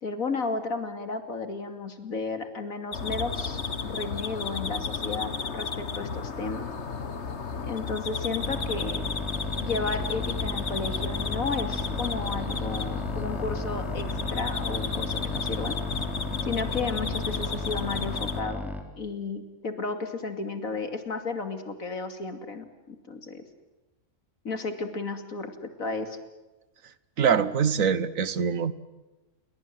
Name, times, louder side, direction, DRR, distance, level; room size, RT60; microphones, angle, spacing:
voice 1, 0.0-6.7 7.6-9.0 9.6-15.8 16.4-23.4 24.4-26.2, left 4 dB, 85° left, 8 dB, 3.0 m, -33 dB
sound 1, 2.9-18.4, left 5 dB, 55° left, 1.8 m, -33 dB
sound 2, 8.4-18.8, left 1 dB, ahead, 3.4 m, -35 dB
voice 2, 27.2-28.7, right 7 dB, 75° right, 16 dB, 1.6 m, -24 dB
29.0 x 22.5 x 7.7 m, 1.1 s
omnidirectional pair, 1.4 m